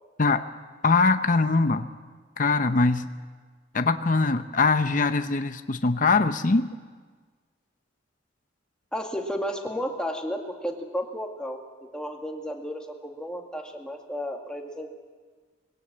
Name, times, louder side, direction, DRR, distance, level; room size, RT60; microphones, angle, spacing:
voice 1, 0.8-1.9 2.4-3.0 3.7-6.7, left 3 dB, 45° left, 9 dB, 0.7 m, -22 dB
voice 2, 8.9-11.6 11.9-14.9, equal, 5° left, 1 dB, 2.1 m, -33 dB
22.0 x 16.5 x 8.7 m, 1.5 s
head